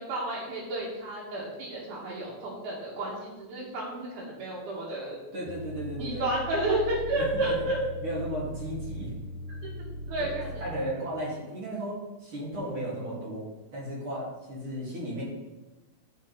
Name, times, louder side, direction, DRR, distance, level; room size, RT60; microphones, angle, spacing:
voice 1, 0.0-5.2 6.0-7.8 10.1-10.5, right 1 dB, 85° right, -6 dB, 3.5 m, -31 dB
voice 2, 5.3-6.3 7.1-7.6 8.0-9.1 10.2-10.3 10.6-15.2, right 1 dB, 45° right, -6 dB, 3.2 m, -35 dB
sound 1, 5.5-10.8, equal, 40° left, 2.8 m, -39 dB
12.0 x 4.5 x 4.1 m, 1.1 s
omnidirectional pair, 3.4 m